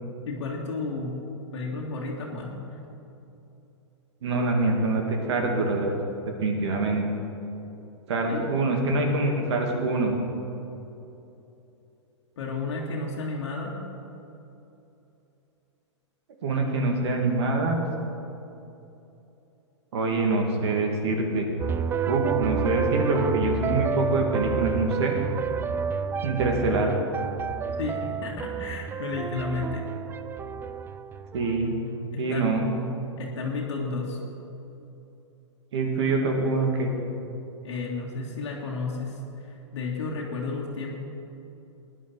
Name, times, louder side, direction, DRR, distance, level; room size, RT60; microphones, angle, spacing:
voice 1, 0.3-1.2 1.5-2.8 8.3-8.5 12.4-13.8 27.7-29.8 32.1-32.7 33.2-34.2 37.6-40.9, left 3 dB, 65° left, -2 dB, 1.9 m, -32 dB
voice 2, 4.2-5.9 6.4-7.0 8.1-10.2 16.4-17.8 19.9-21.5 22.1-25.1 26.2-26.9 31.3-31.7 32.2-32.7 35.7-36.9, right 2 dB, 65° right, 2 dB, 2.5 m, -25 dB
sound 1, 21.6-31.8, right 7 dB, 15° right, 0.4 m, -30 dB
18.0 x 10.5 x 4.3 m, 2.9 s
hypercardioid pair, 110°, 16 cm